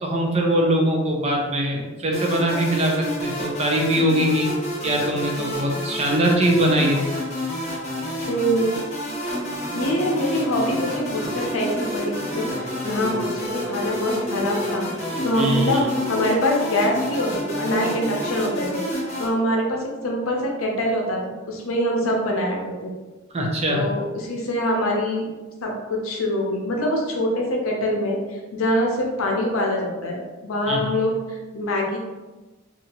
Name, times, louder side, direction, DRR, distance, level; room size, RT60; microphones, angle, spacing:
voice 1, 0.0-4.5 4.8-7.0 15.4-15.8 23.3-23.9 30.7-31.0, right 1 dB, 30° right, 0 dB, 0.5 m, -22 dB
sound 1, 2.1-19.3, left 1 dB, 35° left, 0.8 m, -29 dB
voice 2, 8.3-8.7 9.7-14.9 15.2-15.8 16.1-18.8 19.2-22.9 23.7-25.3 25.6-28.2 28.5-32.0, equal, 80° left, 0 dB, 0.6 m, -24 dB
Bowed string instrument, 9.2-16.6, equal, 15° right, 0.9 m, -34 dB
2.8 x 2.4 x 2.8 m, 1.2 s
head